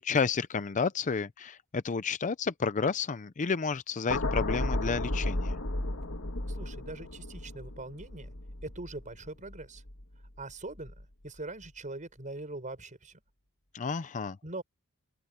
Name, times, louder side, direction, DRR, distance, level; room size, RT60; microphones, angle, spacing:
voice 1, 0.0-5.5 13.7-14.4, left 5 dB, 35° left, 0.5 m, -31 dB
sound 1, 4.1-10.4 10.8-11.0, left 1 dB, 65° left, 2.3 m, -34 dB
voice 2, 6.5-8.3 8.6-9.8 10.4-13.2 14.4-14.6, right 2 dB, 35° right, 5.4 m, -42 dB
open air
head